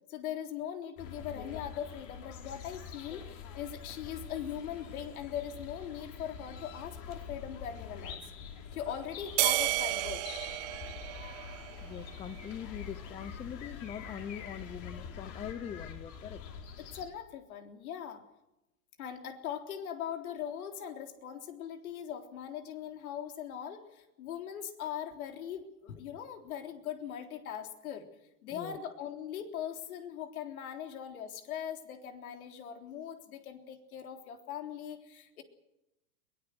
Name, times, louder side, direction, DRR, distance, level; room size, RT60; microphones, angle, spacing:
voice 1, 0.1-8.3 8.7-10.3 16.8-18.2 19.0-28.1 28.4-35.4, left 9 dB, 70° left, 5 dB, 3.7 m, -40 dB
sound 1, 1.0-17.1, left 6 dB, 40° left, 4.0 m, -45 dB
sound 2, 9.4-12.0, right 20 dB, 45° right, 1.4 m, -32 dB
voice 2, 11.8-16.4 28.5-28.8, left 9 dB, 15° left, 15 dB, 0.7 m, -42 dB
22.0 x 18.5 x 7.9 m, 0.91 s
hypercardioid pair, 135°, 44 cm